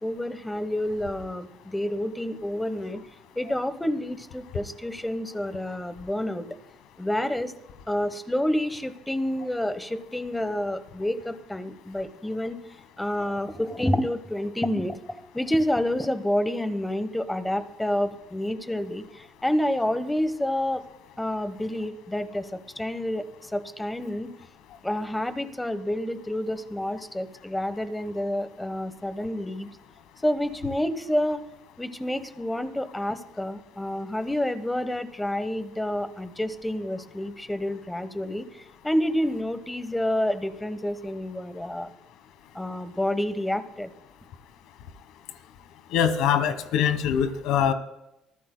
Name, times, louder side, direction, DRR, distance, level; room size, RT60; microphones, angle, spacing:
voice 1, 0.0-3.0 3.4-6.5 7.0-7.5 7.9-12.6 13.0-20.8 21.2-24.3 24.8-29.7 30.2-31.4 31.8-41.9 42.5-43.9, left 1 dB, 10° left, 11 dB, 1.0 m, -29 dB
voice 2, 45.9-47.7, left 8 dB, 80° left, 11 dB, 1.2 m, -23 dB
24.0 x 14.5 x 2.2 m, 0.87 s
cardioid pair, 110°, 0 cm